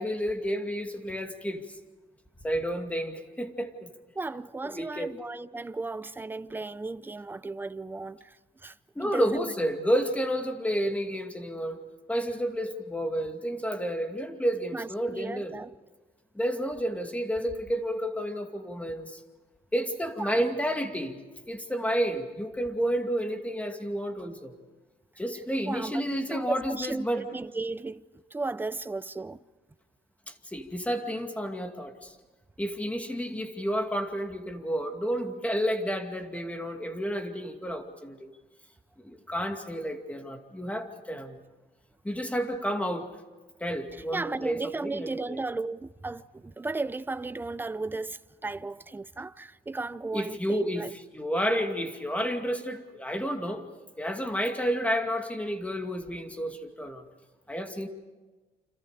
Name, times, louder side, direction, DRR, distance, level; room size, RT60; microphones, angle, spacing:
voice 1, 0.0-1.6 2.4-3.9 4.6-5.1 9.0-11.8 12.1-15.6 16.3-19.2 19.7-21.2 21.5-24.5 25.2-27.3 30.3-32.1 32.6-38.3 39.0-41.4 42.0-43.1 43.6-45.4 50.1-53.7 54.0-57.0 57.5-57.9, equal, 10° left, 2.4 m, -31 dB
voice 2, 4.2-9.5 14.7-15.7 20.2-20.5 25.7-26.0 26.3-29.4 43.9-50.9, right 3 dB, 10° right, 0.6 m, -35 dB
29.5 x 27.0 x 5.0 m
cardioid pair, 110°, 17 cm